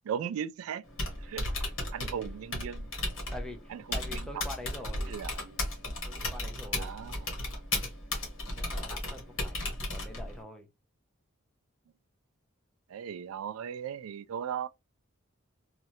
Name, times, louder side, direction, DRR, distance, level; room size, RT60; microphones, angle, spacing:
voice 1, 0.1-0.8 1.2-1.5 1.9-2.9 3.7-4.4 5.1-5.6 6.8-7.2 12.9-14.7, right 8 dB, 90° right, 0.3 m, -37 dB
Typing, 0.8-10.4, left 2 dB, 65° left, 1.4 m, -35 dB
voice 2, 3.3-5.2 6.0-6.9 7.7-7.8 8.5-10.7, left 1 dB, 5° left, 0.6 m, -45 dB
3.1 x 2.4 x 2.7 m
head